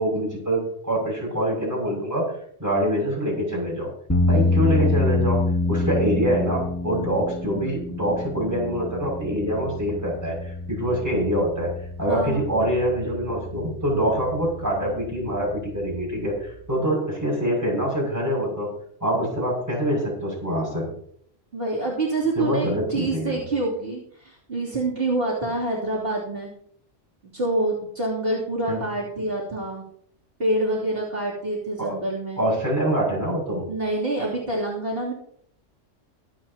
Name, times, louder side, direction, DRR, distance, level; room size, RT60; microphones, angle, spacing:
voice 1, 0.0-2.3 2.6-3.9 4.2-11.7 12.0-18.7 19.0-20.9 22.4-23.4 28.7-28.8 31.8-32.0 32.4-33.7, right 1 dB, 15° right, -4 dB, 6.6 m, -25 dB
sound 1, 4.1-16.6, left 2 dB, 15° left, 1.4 m, -27 dB
voice 2, 4.3-4.6 12.1-12.6 21.5-26.5 27.3-29.9 30.4-32.4 33.7-35.1, right 2 dB, 50° right, -6 dB, 3.3 m, -27 dB
24.0 x 8.2 x 2.9 m, 0.65 s
omnidirectional pair, 1.3 m